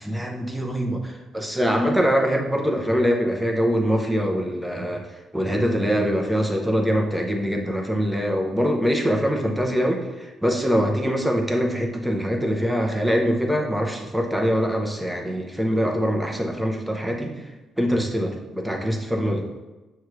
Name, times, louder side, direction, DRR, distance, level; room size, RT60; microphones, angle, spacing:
voice 1, 0.0-5.1 5.3-17.5 17.8-19.5, equal, 5° right, 1 dB, 0.7 m, -23 dB
6.2 x 2.3 x 3.1 m, 1.1 s
cardioid pair, 90°, 0 cm